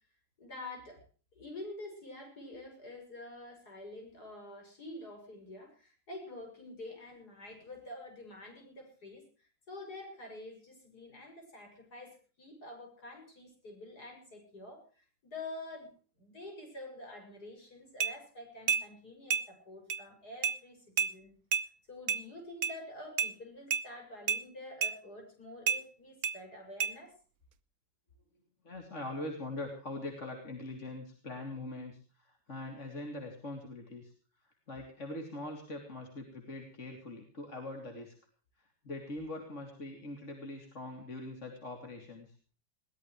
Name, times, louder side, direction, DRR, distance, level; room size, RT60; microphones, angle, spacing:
voice 1, 0.4-1.0 1.3-21.3 21.9-27.1, left 2 dB, 60° left, 3 dB, 7.4 m, -47 dB
sound 1, 18.0-18.1 18.7-18.8 19.3-19.4 19.9-20.0 20.4-20.6 21.0-21.1 21.5-21.7 22.1-22.2 22.6-22.7 23.2-23.3 23.7-23.8 24.3-24.4 24.8-24.9 25.7-25.8 26.2-26.4 26.8-26.9, right 6 dB, 60° right, 1.3 m, -30 dB
voice 2, 28.6-34.1 34.4-38.1 38.6-42.4, left 2 dB, 40° left, 3 dB, 3.3 m, -42 dB
21.5 x 18.0 x 3.1 m, 0.39 s
omnidirectional pair, 1.9 m